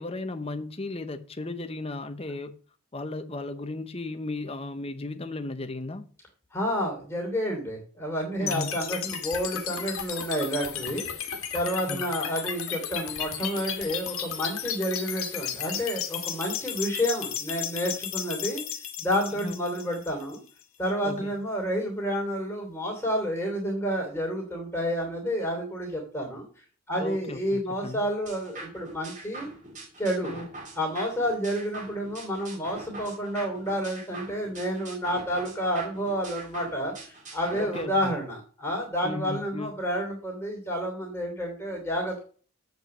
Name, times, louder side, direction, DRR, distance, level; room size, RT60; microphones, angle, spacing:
voice 1, 0.0-2.6 2.9-6.1 8.4-8.8 11.9-12.0 19.4-19.6 21.0-21.3 27.0-28.0 30.2-30.5 37.5-38.1 39.0-39.7, left 2 dB, 25° left, 0.8 m, -35 dB
voice 2, 6.5-11.3 11.5-18.6 19.0-20.4 20.8-26.5 26.9-29.5 30.0-30.3 30.7-42.2, equal, 10° left, 3.0 m, -30 dB
sound 1, 8.5-20.5, left 9 dB, 70° left, 1.6 m, -34 dB
sound 2, 28.3-37.9, right 2 dB, 35° right, 2.2 m, -43 dB
7.8 x 5.6 x 7.8 m
head